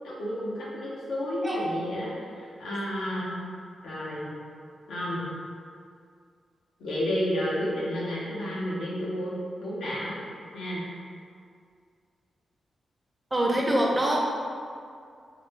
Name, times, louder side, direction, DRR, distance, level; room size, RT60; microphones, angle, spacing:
voice 1, 0.0-3.4 3.8-4.3 4.9-5.3 6.8-10.1 10.5-10.8, equal, 80° left, -7 dB, 0.7 m, -31 dB
voice 2, 13.3-14.2, right 1 dB, 25° right, -1 dB, 0.6 m, -24 dB
3.9 x 2.0 x 2.8 m, 2.3 s
supercardioid pair, 45°, 0 cm